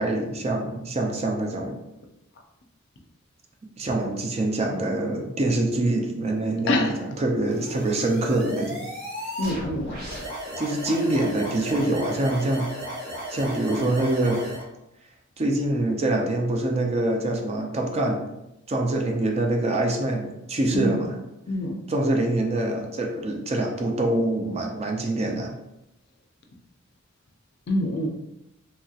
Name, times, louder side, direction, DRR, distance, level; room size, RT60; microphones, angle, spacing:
voice 1, 0.0-1.8 3.8-6.9 7.2-8.9 10.6-12.7 13.3-14.4 15.4-18.3 18.7-21.2 21.9-25.5, right 2 dB, 30° right, 2 dB, 0.4 m, -25 dB
voice 2, 6.7-7.1 9.4-10.1 20.7-21.0 21.5-21.8 27.7-28.1, left 1 dB, 55° left, 3 dB, 0.4 m, -25 dB
sound 1, 7.5-14.6, equal, 50° right, 1.0 m, -35 dB
2.9 x 2.8 x 2.4 m, 0.88 s
head